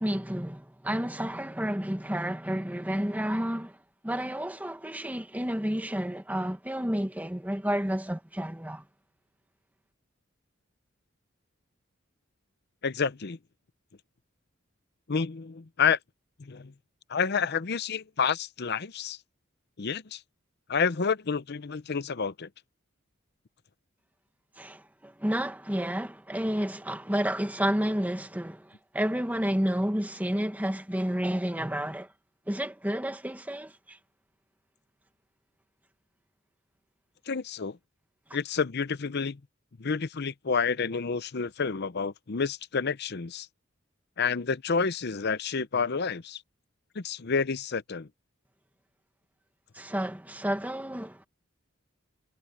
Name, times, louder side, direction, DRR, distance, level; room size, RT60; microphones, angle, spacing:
voice 1, 0.0-3.8 4.0-8.8 24.6-32.1 32.5-34.0 49.7-51.2, equal, 10° right, 1.4 m, -30 dB
voice 2, 12.8-13.4 15.1-16.0 16.4-16.7 17.1-19.2 19.8-20.2 20.7-22.5 37.3-37.8 38.3-39.4 39.8-43.5 44.2-46.4 47.0-48.1, left 5 dB, 55° left, 0.7 m, -29 dB
head